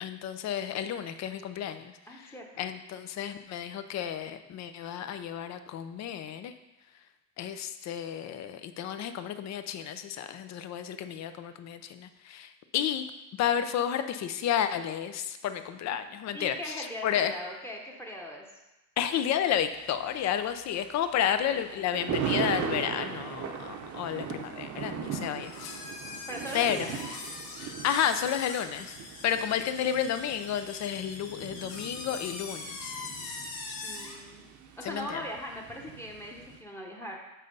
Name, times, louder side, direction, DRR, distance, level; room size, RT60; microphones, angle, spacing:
voice 1, 0.0-1.9 2.6-6.5 7.4-13.0 13.4-17.3 19.0-25.8 26.5-26.8 27.6-28.9 29.2-32.9 34.8-35.2, left 9 dB, 50° left, 10 dB, 0.6 m, -31 dB
voice 2, 2.1-2.7 16.3-18.5 21.1-22.0 26.3-27.0 33.8-34.4 34.8-37.2, equal, 5° left, 0 dB, 1.0 m, -40 dB
Thunder, 19.5-36.6, right 7 dB, 50° right, 0.8 m, -39 dB
sound 1, 25.4-34.2, left 3 dB, 80° left, 1.6 m, -42 dB
7.4 x 4.1 x 5.4 m, 1.0 s
cardioid pair, 125°, 37 cm